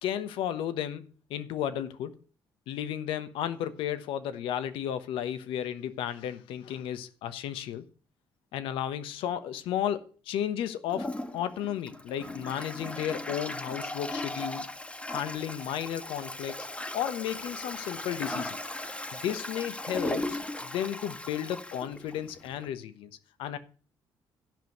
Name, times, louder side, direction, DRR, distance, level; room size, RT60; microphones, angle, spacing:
voice 1, 0.0-2.2 2.7-7.8 8.5-14.7 15.1-16.7 16.9-18.6 19.1-23.1 23.4-23.6, left 10 dB, 85° left, 1.1 m, -33 dB
Toilet flush, 10.9-22.7, left 1 dB, 15° left, 1.4 m, -37 dB
10.5 x 5.4 x 7.8 m
cardioid pair, 85°, 9 cm